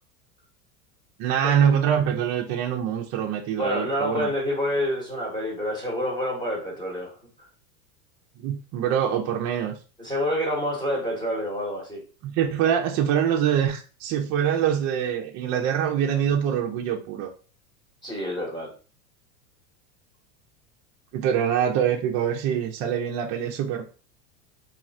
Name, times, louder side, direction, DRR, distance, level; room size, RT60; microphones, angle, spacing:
voice 1, 1.2-4.3 8.4-9.7 12.2-17.3 21.1-23.8, right 9 dB, 35° right, 2 dB, 0.4 m, -24 dB
voice 2, 3.6-7.1 10.0-12.0 18.0-18.7, equal, 10° left, -3 dB, 0.9 m, -27 dB
3.1 x 2.4 x 2.5 m, 0.36 s
hypercardioid pair, 110°, 48 cm